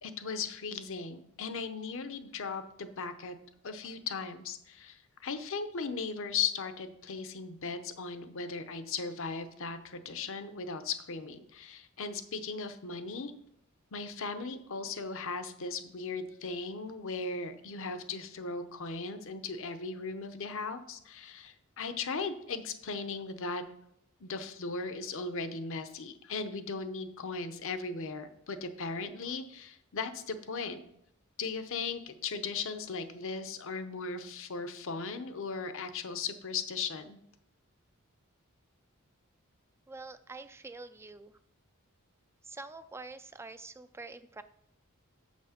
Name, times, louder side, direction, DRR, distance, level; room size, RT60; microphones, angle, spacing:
voice 1, 0.0-3.3 3.6-13.3 13.9-23.6 24.2-30.8 31.4-37.2, left 4 dB, 65° left, 10 dB, 0.8 m, -37 dB
voice 2, 39.9-41.3 42.4-44.4, right 3 dB, 10° right, 11 dB, 0.3 m, -46 dB
7.4 x 6.2 x 5.7 m, 0.74 s
head